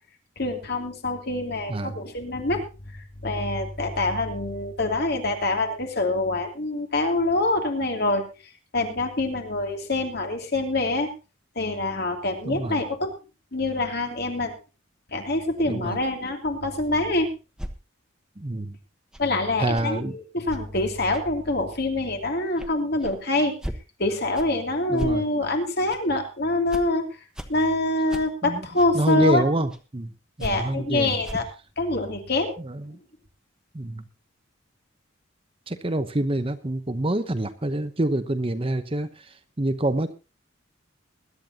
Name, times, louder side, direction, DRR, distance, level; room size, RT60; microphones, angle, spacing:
voice 1, 0.4-2.6 2.9-8.2 8.7-11.1 11.6-13.1 13.5-14.5 15.1-17.3 19.2-23.5 24.0-27.1 27.5-29.4 30.4-31.4 31.8-32.5, left 2 dB, 50° left, 3 dB, 2.9 m, -25 dB
voice 2, 12.5-12.8 15.6-16.0 18.4-18.8 19.6-20.1 24.9-25.3 28.4-28.6 28.9-30.1 30.4-31.2 32.6-33.0 33.7-34.0 35.7-39.3 39.6-40.1, right 1 dB, 30° right, 10 dB, 0.9 m, -26 dB
sound 1, 17.6-17.7 19.1-19.3 19.7-19.9 20.5-20.6 21.1-21.2 21.7-21.8 22.6-22.7 23.0-23.2 23.6-23.8 24.4-24.5 25.0-25.2 25.9-26.0 26.7-26.8 27.4-27.5 28.1-28.2 28.8-28.9 29.7-29.8 30.4-30.6 31.2-31.5, equal, 5° right, 1.1 m, -35 dB
21.0 x 11.5 x 2.9 m, 0.30 s
head